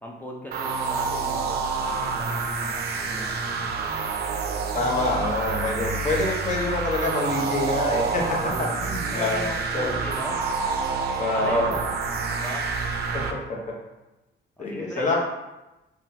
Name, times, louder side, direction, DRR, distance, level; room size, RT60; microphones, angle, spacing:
voice 1, 0.0-3.8 8.1-8.7 9.0-10.4 11.3-11.9 12.3-12.7 14.6-15.1, equal, 10° left, -2 dB, 0.5 m, -38 dB
sound 1, 0.5-13.3, right 4 dB, 55° right, 0.4 m, -28 dB
voice 2, 4.7-8.2 8.6-9.5 9.7-9.9 11.2-11.7 13.3-13.6 14.6-15.2, left 2 dB, 40° left, -2 dB, 0.9 m, -26 dB
3.7 x 2.3 x 2.7 m, 1.0 s
cardioid pair, 90°, 20 cm